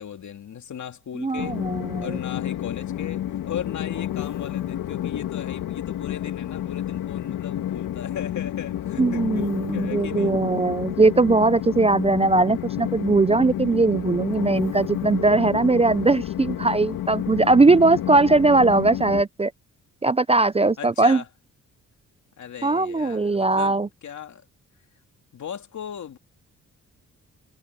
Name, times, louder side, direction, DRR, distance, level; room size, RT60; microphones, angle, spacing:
voice 1, 0.0-1.6 2.0-10.3 17.6-17.7 20.8-21.3 22.4-24.4 25.3-26.2, left 8 dB, 60° left, 2.7 m, -37 dB
voice 2, 1.2-2.2 9.0-19.5 20.0-21.2 22.6-23.9, right 3 dB, 20° right, 0.6 m, -20 dB
Train, 1.4-19.2, left 12 dB, 85° left, 2.0 m, -30 dB
cardioid pair, 65°, 32 cm